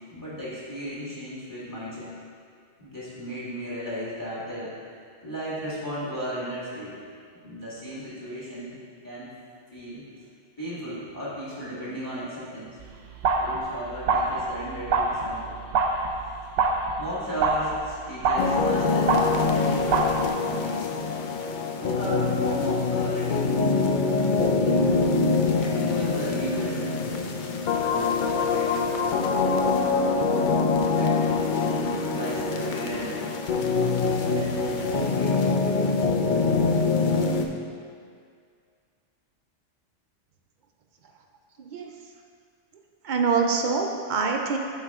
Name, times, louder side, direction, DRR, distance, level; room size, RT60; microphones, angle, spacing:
voice 1, 0.0-2.1 2.8-4.7 5.2-7.0 7.4-8.8 9.0-9.3 9.7-10.0 10.6-12.7 13.4-15.6 17.0-20.9 21.7-23.6 24.3-24.8 25.5-27.3 27.9-30.1 30.9-33.3 33.9-35.4, equal, 15° left, -9 dB, 1.7 m, -36 dB
sound 1, 12.8-20.3, right 3 dB, 85° right, 1.0 m, -26 dB
sound 2, 18.4-37.5, left 4 dB, 60° left, 0.5 m, -24 dB
voice 2, 41.6-41.9 43.0-44.6, right 5 dB, 55° right, 2 dB, 0.5 m, -25 dB
8.8 x 4.0 x 3.6 m, 2.2 s
omnidirectional pair, 1.3 m